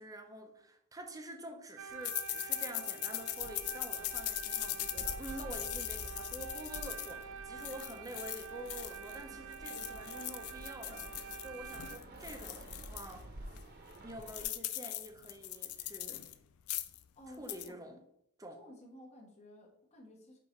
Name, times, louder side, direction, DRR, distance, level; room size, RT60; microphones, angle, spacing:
voice 1, 0.0-13.6 14.0-16.3 17.3-18.0 18.4-18.6, right 1 dB, 15° right, 0.7 m, -48 dB
sound 1, 1.8-12.0, right 6 dB, 60° right, 0.5 m, -47 dB
sound 2, 2.0-9.2 9.5-13.1 13.6-13.7 13.9-16.3 16.6-17.0 17.3-17.7, left 14 dB, 80° left, 0.4 m, -40 dB
Fixed-wing aircraft airplane, 3.4-14.4, right 1 dB, 45° right, 1.0 m, -50 dB
voice 2, 17.1-17.8 18.5-20.4, equal, 30° left, 1.2 m, -54 dB
5.6 x 3.8 x 4.4 m
head